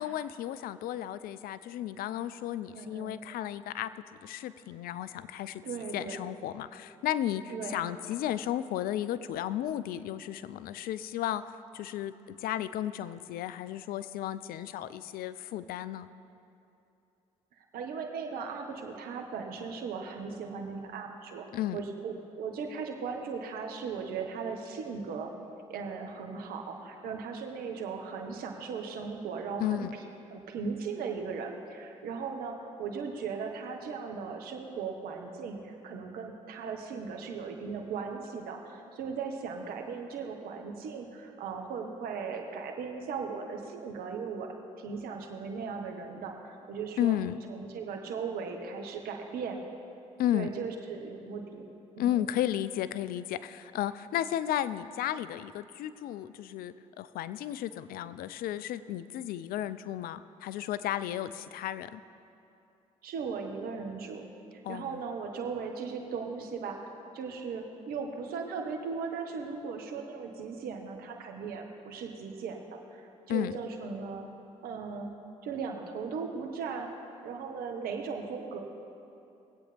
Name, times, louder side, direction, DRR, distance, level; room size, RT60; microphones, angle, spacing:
voice 1, 0.0-5.6 5.9-16.1 21.5-21.8 29.6-29.9 47.0-47.4 50.2-50.5 52.0-62.0 64.6-65.0 73.3-73.5, left 12 dB, 70° left, 15 dB, 0.5 m, -33 dB
voice 2, 2.7-3.1 5.6-6.3 7.5-7.8 17.6-21.5 21.7-25.3 25.7-29.9 30.3-44.5 44.8-47.2 47.5-49.6 50.3-51.7 52.0-52.3 63.0-74.3 74.6-75.1 75.4-76.9 77.2-78.6, right 5 dB, 70° right, 3 dB, 1.4 m, -38 dB
21.5 x 8.4 x 3.4 m, 2.7 s
hypercardioid pair, 55°, 16 cm